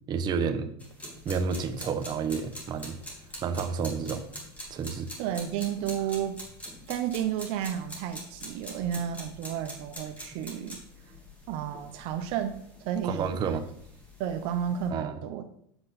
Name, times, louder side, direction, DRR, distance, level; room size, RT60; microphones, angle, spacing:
voice 1, 0.1-0.7 1.2-3.0 3.4-4.2 4.7-5.1 13.0-13.7 14.9-15.2, right 6 dB, 35° right, 6 dB, 1.0 m, -30 dB
sound 1, 0.8-14.9, equal, 10° left, 2.6 m, -45 dB
voice 2, 5.2-6.4 6.9-10.8 11.5-13.5 14.2-15.4, right 9 dB, 55° right, 7 dB, 0.8 m, -32 dB
8.0 x 7.7 x 4.2 m, 0.69 s
supercardioid pair, 130°, 13 cm